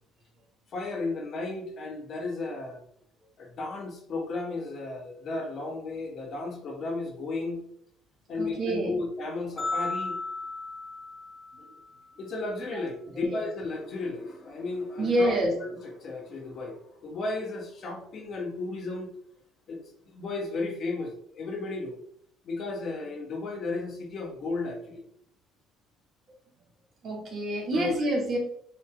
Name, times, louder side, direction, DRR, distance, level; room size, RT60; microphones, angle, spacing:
voice 1, 0.7-2.8 3.4-7.6 8.3-10.2 12.2-19.1 19.7-19.8 20.1-21.9 22.4-25.0 27.7-27.9, left 3 dB, 55° left, 2 dB, 1.1 m, -34 dB
voice 2, 8.3-9.0 11.5-11.8 12.7-12.8 13.1-13.4 15.0-15.5 27.0-28.4, right 1 dB, 50° right, 0 dB, 1.6 m, -28 dB
sound 1, 9.6-11.9, left 3 dB, 20° left, 1.3 m, -34 dB
6.0 x 3.2 x 2.3 m, 0.66 s
hypercardioid pair, 60°, 0 cm